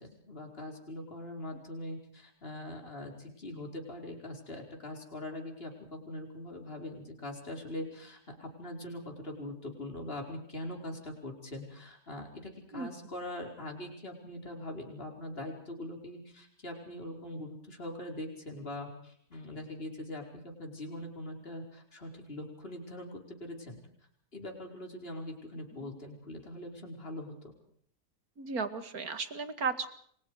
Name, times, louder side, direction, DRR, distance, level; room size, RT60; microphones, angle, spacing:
voice 1, 0.0-23.8 24.3-27.5, left 1 dB, 35° left, 2 dB, 5.3 m, -42 dB
voice 2, 28.4-29.9, right 4 dB, 60° right, 10 dB, 2.5 m, -34 dB
29.5 x 24.0 x 5.0 m, 0.62 s
omnidirectional pair, 1.8 m